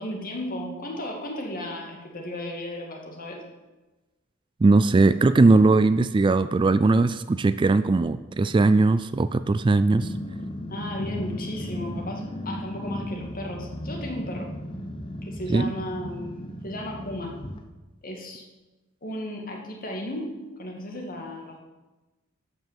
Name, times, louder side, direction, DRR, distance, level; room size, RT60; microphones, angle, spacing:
voice 1, 0.0-3.4 10.7-14.5 15.2-17.4 18.0-18.4 19.0-20.3 20.6-21.6, left 1 dB, 45° left, 1 dB, 2.2 m, -35 dB
voice 2, 4.6-10.1 15.5-15.7, right 3 dB, 25° right, 14 dB, 0.3 m, -19 dB
Growling, 9.9-17.6, equal, 25° left, 1.0 m, -35 dB
12.0 x 6.1 x 7.3 m, 1.1 s
head